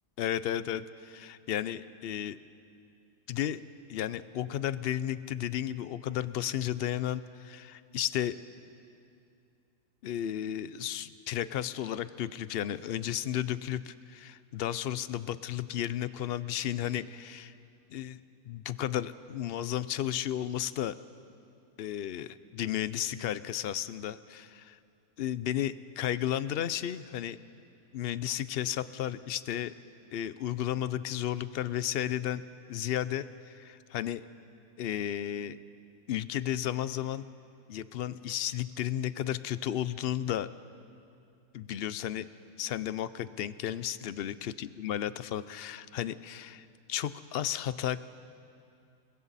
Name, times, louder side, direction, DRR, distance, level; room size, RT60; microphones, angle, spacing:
voice 1, 0.2-2.4 3.3-3.6 3.9-8.4 10.0-17.5 17.9-18.2 18.5-20.9 21.8-24.8 25.2-27.4 27.9-29.7 30.1-32.4 32.7-34.2 34.8-35.6 36.1-37.3 37.7-40.5 41.5-42.3 42.6-48.0, left 11 dB, 60° left, 15 dB, 0.7 m, -33 dB
29.0 x 21.5 x 4.2 m, 2.5 s
omnidirectional pair, 1.4 m